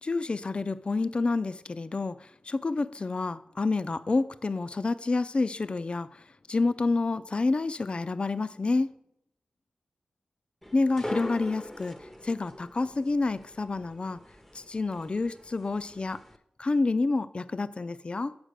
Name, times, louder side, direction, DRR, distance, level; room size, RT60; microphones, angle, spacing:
voice 1, 0.0-8.9 10.7-14.2 14.5-16.2 16.6-18.4, left 3 dB, 40° left, 0.4 m, -29 dB
sound 1, 10.6-16.4, left 1 dB, 5° left, 0.8 m, -42 dB
6.4 x 4.9 x 6.6 m
cardioid pair, 45°, 3 cm